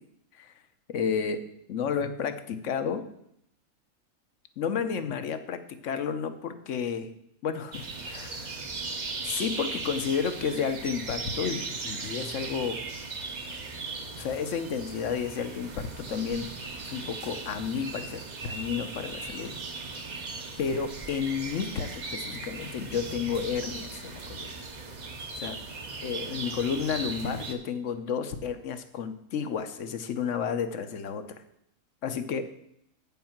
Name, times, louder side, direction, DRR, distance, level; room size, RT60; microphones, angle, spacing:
voice 1, 0.9-1.4 1.7-3.0 4.6-7.1 7.4-8.6 9.2-12.8 14.2-16.5 16.8-19.5 20.6-24.5 25.3-25.6 26.0-31.2 32.0-32.4, left 6 dB, 65° left, 10 dB, 1.1 m, -31 dB
sound 1, 7.7-27.5, right 3 dB, 35° right, 0.8 m, -38 dB
8.7 x 5.5 x 5.8 m, 0.74 s
omnidirectional pair, 1.5 m